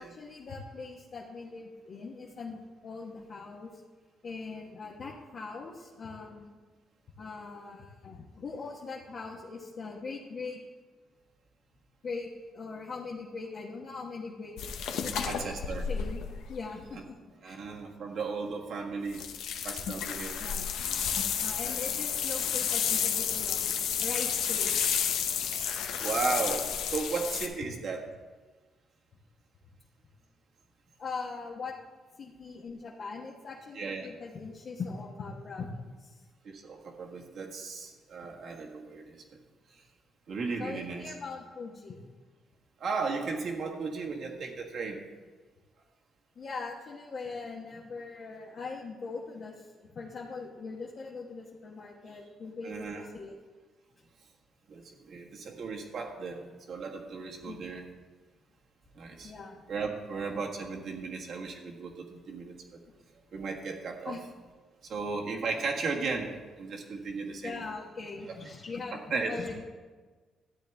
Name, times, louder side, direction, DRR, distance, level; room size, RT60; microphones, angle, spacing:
voice 1, 0.0-3.8 4.2-6.5 7.2-10.6 12.0-14.6 15.0-15.5 15.8-16.2 16.5-17.2 17.4-17.6 20.4-20.8 21.4-23.6 24.0-24.8 31.0-31.7 32.2-36.2 40.6-42.0 46.4-53.3 57.4-57.7 59.2-59.6 64.0-64.2 67.4-69.6, left 4 dB, 50° left, -3 dB, 1.2 m, -41 dB
sound 1, 14.6-16.8 19.1-27.5, left 8 dB, 85° left, 0.8 m, -31 dB
voice 2, 15.3-15.9 17.4-19.3 19.6-20.4 21.5-21.8 25.5-25.6 26.0-28.1 33.7-34.1 36.4-39.0 40.3-41.1 42.8-45.0 52.6-53.0 54.7-54.8 55.1-57.8 58.9-59.3 59.7-62.8 63.3-64.2 64.9-66.3 66.6-67.6 68.3-68.4 69.1-69.3, right 4 dB, 65° right, 0 dB, 1.6 m, -35 dB
13.0 x 8.6 x 3.5 m, 1.4 s
cardioid pair, 90°, 0 cm